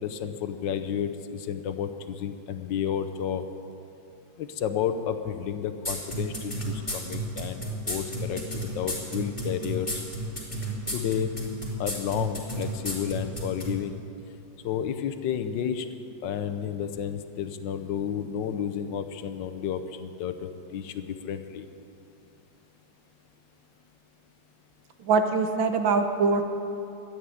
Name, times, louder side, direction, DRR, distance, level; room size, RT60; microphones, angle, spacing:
voice 1, 0.0-3.5 4.4-10.0 10.9-11.3 11.8-14.0 14.6-15.9 16.2-21.7, left 8 dB, 70° left, 9 dB, 1.3 m, -31 dB
sound 1, 5.8-13.7, right 1 dB, 15° left, 3.2 m, -32 dB
voice 2, 25.0-26.4, right 4 dB, 70° right, 7 dB, 1.6 m, -23 dB
13.0 x 8.9 x 9.9 m, 2.8 s
omnidirectional pair, 2.3 m